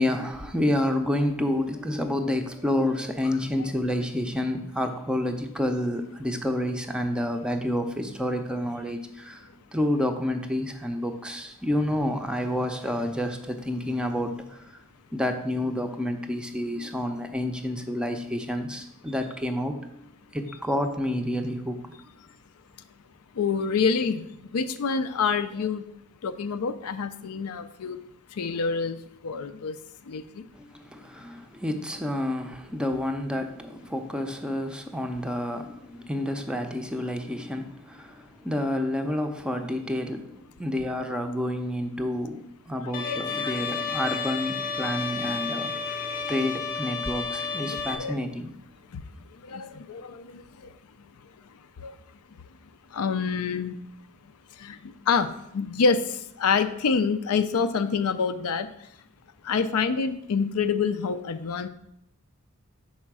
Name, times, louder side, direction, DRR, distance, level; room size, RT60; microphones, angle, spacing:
voice 1, 0.0-14.8 15.1-20.1 20.3-21.9 30.5-46.0 46.3-48.5, left 1 dB, 5° right, 0.5 m, -29 dB
voice 2, 23.4-24.2 24.5-25.8 26.2-28.0 28.4-29.0 29.2-29.7 30.1-30.2 43.0-43.6 48.0-48.2 49.5-50.2 51.8-51.9 52.9-53.8 54.6-55.3 55.5-56.0 56.4-58.7 59.5-61.7, left 5 dB, 75° left, 0.5 m, -26 dB
Bowed string instrument, 42.9-48.0, left 5 dB, 40° left, 0.6 m, -31 dB
5.6 x 4.3 x 6.0 m
head